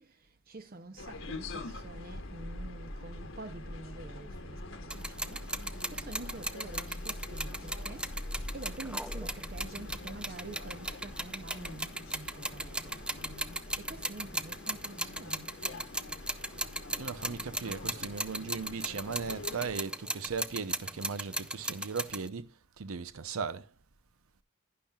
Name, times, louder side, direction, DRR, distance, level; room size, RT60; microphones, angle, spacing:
voice 1, 0.0-8.1 8.5-15.5, right 2 dB, 45° right, 0.7 m, -47 dB
sound 1, 1.0-19.8, left 1 dB, 65° left, 1.4 m, -44 dB
sound 2, 4.9-22.3, right 1 dB, 5° right, 0.4 m, -37 dB
voice 2, 17.0-22.5 22.8-23.7, right 5 dB, 90° right, 0.7 m, -37 dB
11.0 x 10.5 x 2.3 m
head